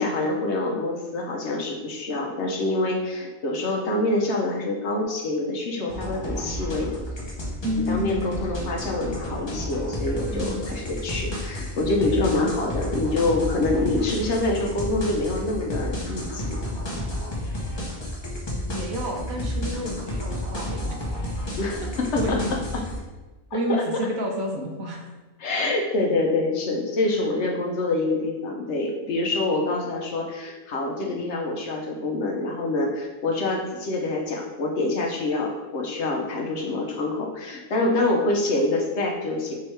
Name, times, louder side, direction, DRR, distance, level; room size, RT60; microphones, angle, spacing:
voice 1, 0.0-6.9 7.9-16.6 21.6-22.4 22.7-22.8 23.5-23.8 25.4-39.5, left 2 dB, 60° left, 0 dB, 0.8 m, -26 dB
sound 1, 5.9-23.0, left 1 dB, 25° left, 0.6 m, -31 dB
voice 2, 7.6-8.4 10.3-10.7 12.0-12.2 18.7-21.0 21.8-21.9 22.2-22.5 23.5-25.1 37.8-38.2, right 1 dB, 75° right, 2 dB, 1.1 m, -30 dB
4.4 x 3.5 x 3.2 m, 1.2 s
omnidirectional pair, 1.5 m